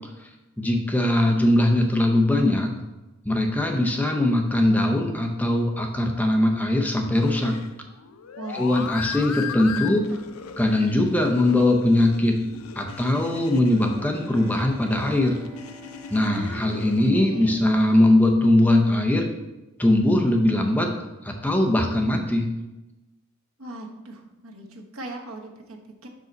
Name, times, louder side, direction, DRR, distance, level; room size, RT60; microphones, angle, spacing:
voice 1, 0.6-2.7 3.2-7.6 8.5-10.0 10.6-12.4 12.8-15.4 16.1-19.3 19.8-20.9 21.2-22.5, left 1 dB, 10° left, 2 dB, 0.6 m, -21 dB
sound 1, 7.1-17.1, left 7 dB, 85° left, 0.5 m, -38 dB
voice 2, 9.8-10.2 16.3-16.9 17.2-17.6 23.6-26.1, right 1 dB, 85° right, 2 dB, 1.1 m, -39 dB
Bowed string instrument, 13.7-18.0, equal, 25° right, 1.6 m, -47 dB
6.3 x 5.0 x 4.0 m, 1.0 s
head